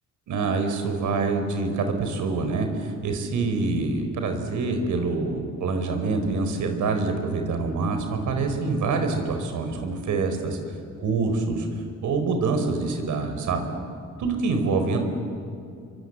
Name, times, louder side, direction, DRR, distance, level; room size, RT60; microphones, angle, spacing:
voice 1, 0.3-10.6 11.0-11.7 12.0-13.7 14.2-15.0, right 3 dB, 75° right, 6 dB, 4.7 m, -26 dB
30.0 x 23.5 x 8.2 m, 2.4 s
cardioid pair, 90°, 30 cm